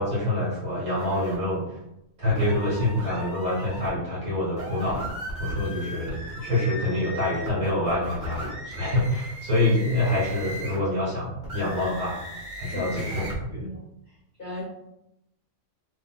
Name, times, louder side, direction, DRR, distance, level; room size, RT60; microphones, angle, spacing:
voice 1, 0.0-1.6 2.2-5.0 5.4-12.2 12.6-13.6, left 1 dB, 90° right, -8 dB, 1.7 m, -26 dB
sound 1, 0.9-1.4 2.3-3.9 4.5-10.9 11.4-13.4, right 1 dB, 15° left, 0.9 m, -37 dB
voice 2, 12.7-12.9 13.1-13.3 13.6-13.8 14.4-14.6, left 1 dB, 50° left, -6 dB, 0.7 m, -36 dB
3.0 x 2.6 x 2.3 m, 0.85 s
omnidirectional pair, 1.4 m